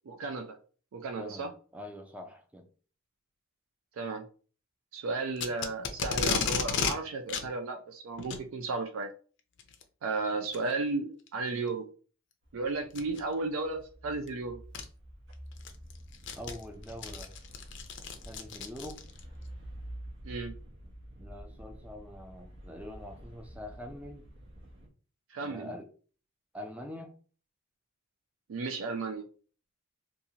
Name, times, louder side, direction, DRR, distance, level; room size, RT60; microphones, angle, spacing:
voice 1, 0.1-0.6 0.9-1.5 3.9-4.3 4.9-9.1 10.0-11.9 12.5-14.6 20.2-20.5 25.3-25.7 28.5-29.2, right 3 dB, 75° right, 6 dB, 0.4 m, -34 dB
voice 2, 1.1-2.7 16.4-17.3 18.2-19.0 21.2-24.3 25.4-25.9 26.5-27.1, left 1 dB, 5° right, 5 dB, 0.3 m, -44 dB
Packing tape duct tape, 5.4-7.0 7.3-7.5 8.2-8.4 9.6-9.8 10.5-10.6 11.3-11.4 12.9-13.2 14.3-14.4 14.7-14.8 15.3-19.2, left 6 dB, 60° left, 0.4 m, -33 dB
sound 1, 12.4-24.9, equal, 60° right, 0.8 m, -48 dB
2.7 x 2.4 x 2.8 m, 0.40 s
head